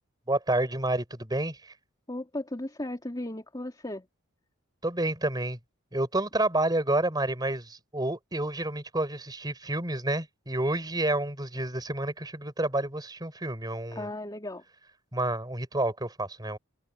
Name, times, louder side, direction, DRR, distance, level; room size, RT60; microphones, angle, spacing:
voice 1, 0.3-1.7 4.8-5.6 5.9-14.1 15.1-16.6, right 1 dB, 20° right, 5.2 m, -29 dB
voice 2, 2.1-4.1 13.9-14.6, left 1 dB, 20° left, 2.7 m, -36 dB
head